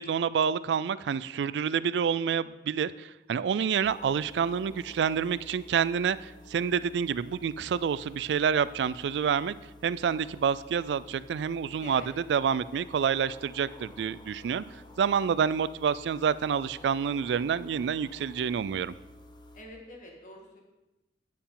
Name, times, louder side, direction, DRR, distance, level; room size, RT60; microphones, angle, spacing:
voice 1, 0.0-9.5 9.8-14.6 15.0-18.9, right 7 dB, 75° right, 17 dB, 0.3 m, -28 dB
sound 1, 3.8-19.6, left 1 dB, 25° left, 0.7 m, -51 dB
voice 2, 11.8-12.1 19.5-20.6, left 1 dB, 45° left, 0 dB, 2.0 m, -47 dB
9.1 x 8.6 x 3.9 m, 0.99 s
head